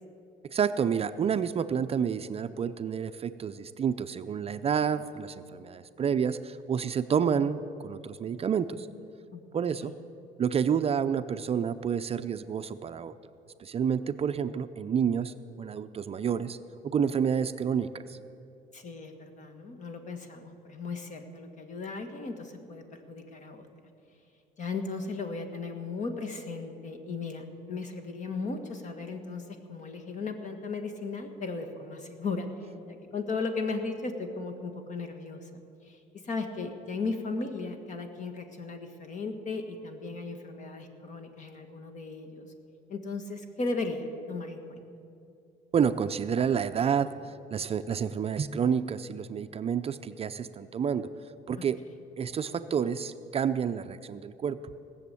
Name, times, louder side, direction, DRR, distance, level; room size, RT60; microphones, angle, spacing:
voice 1, 0.5-8.9 9.5-9.9 10.4-13.1 13.6-16.6 16.8-18.2 45.7-47.1 47.5-51.1 51.5-51.8 52.2-54.6, right 7 dB, 35° right, 10 dB, 0.5 m, -29 dB
voice 2, 18.7-23.7 24.6-32.5 32.9-35.5 35.8-36.0 36.2-42.5 42.9-44.8, left 3 dB, 45° left, 7 dB, 1.7 m, -36 dB
18.5 x 7.1 x 8.4 m, 2.5 s
cardioid pair, 110°, 17 cm